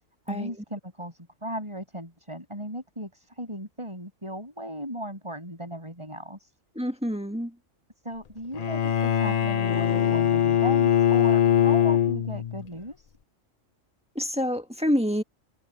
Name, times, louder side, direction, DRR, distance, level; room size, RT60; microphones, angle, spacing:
voice 1, 0.3-6.5 8.0-13.1, equal, 20° right, 7.5 m, -37 dB
voice 2, 6.7-7.5 14.1-15.2, equal, 5° right, 1.7 m, -27 dB
Bowed string instrument, 8.5-12.7, left 9 dB, 45° left, 0.5 m, -22 dB
omnidirectional pair, 1.3 m